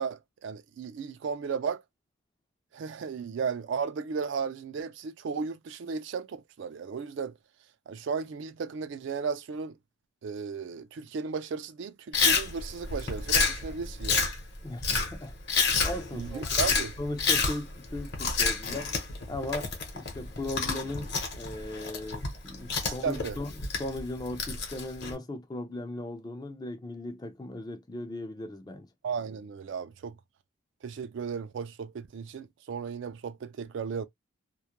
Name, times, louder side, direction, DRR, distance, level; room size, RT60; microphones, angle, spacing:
voice 1, 0.0-1.8 2.7-7.4 7.9-9.7 10.2-14.3 16.1-16.9 22.8-23.4 29.0-30.2 30.8-34.1, right 5 dB, 55° right, 0.3 m, -35 dB
Chewing mastication, 12.1-25.1, left 4 dB, 50° left, 0.8 m, -29 dB
voice 2, 14.6-15.3 15.8-16.6 17.0-18.9 19.3-28.9, left 2 dB, 20° left, 0.4 m, -37 dB
2.3 x 2.1 x 2.8 m
head